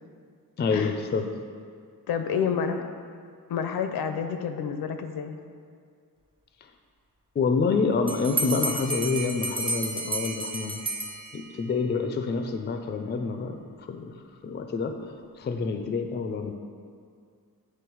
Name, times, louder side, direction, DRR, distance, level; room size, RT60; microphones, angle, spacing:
voice 1, 0.6-1.3 7.4-10.8 11.3-14.1 14.4-15.0 15.4-16.5, left 4 dB, 30° left, 6 dB, 0.4 m, -27 dB
voice 2, 2.1-2.9 3.5-5.4, left 7 dB, 80° left, 7 dB, 0.6 m, -29 dB
Bell, 8.1-11.7, right 2 dB, 15° right, 0.6 m, -31 dB
8.8 x 3.2 x 4.6 m, 2.2 s
wide cardioid pair, 130°, 37 cm